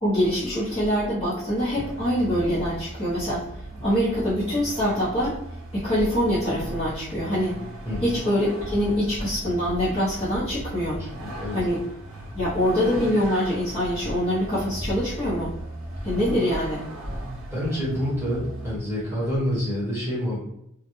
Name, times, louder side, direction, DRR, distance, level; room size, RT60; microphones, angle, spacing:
voice 1, 0.0-5.4 5.7-7.6 8.0-11.0 11.5-11.8 12.3-15.5 16.0-16.8 17.1-17.2, equal, 25° left, -12 dB, 0.7 m, -24 dB
Vehicle, 1.5-18.8, right 1 dB, 75° right, 0.7 m, -40 dB
voice 2, 11.0-11.6 17.5-20.4, equal, 10° right, -9 dB, 1.0 m, -27 dB
2.3 x 2.1 x 2.9 m, 0.77 s
head